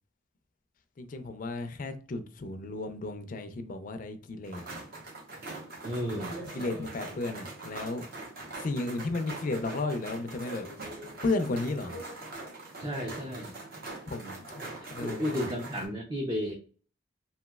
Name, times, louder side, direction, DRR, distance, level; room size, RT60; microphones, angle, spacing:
voice 1, 1.0-4.8 6.5-8.0 8.6-10.7 11.2-12.0 14.1-15.3, left 2 dB, 40° left, 0.4 m, -34 dB
sound 1, 4.4-15.9, right 2 dB, 50° right, 0.8 m, -42 dB
voice 2, 5.8-6.4 12.8-13.5 15.0-16.5, equal, 20° right, 0.4 m, -33 dB
3.0 x 2.8 x 2.2 m
head